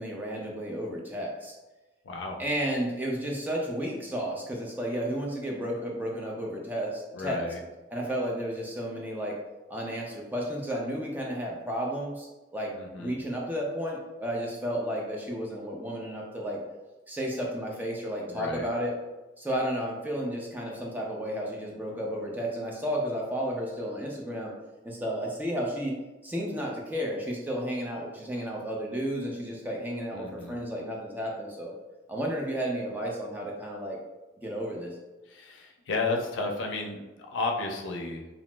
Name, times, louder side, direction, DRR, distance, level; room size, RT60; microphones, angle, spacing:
voice 1, 0.0-1.5 2.4-7.4 7.9-9.4 9.7-12.7 13.0-16.6 17.1-18.9 19.4-24.5 24.8-31.7 32.1-34.0 34.4-35.0, equal, 10° right, -2 dB, 0.4 m, -32 dB
voice 2, 2.0-2.4 7.1-7.6 12.7-13.1 18.3-18.7 30.1-30.6 35.3-38.3, left 3 dB, 85° left, 1 dB, 0.5 m, -33 dB
2.7 x 2.0 x 3.1 m, 1.1 s
head